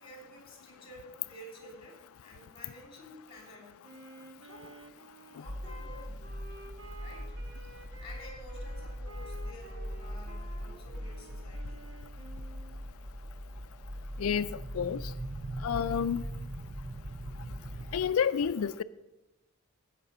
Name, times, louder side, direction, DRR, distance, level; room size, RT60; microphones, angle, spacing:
voice 1, 0.0-3.8 4.4-4.9 5.2-6.3 7.0-11.9, left 1 dB, 25° left, 0 dB, 3.1 m, -51 dB
Wind instrument woodwind instrument, 3.8-12.8, right 1 dB, 55° right, 1.6 m, -52 dB
sound 1, 5.4-18.1, equal, 35° right, 0.8 m, -41 dB
voice 2, 15.6-16.2 17.9-18.8, left 7 dB, 75° left, 15 dB, 0.4 m, -29 dB
15.5 x 5.9 x 5.5 m, 1.0 s
head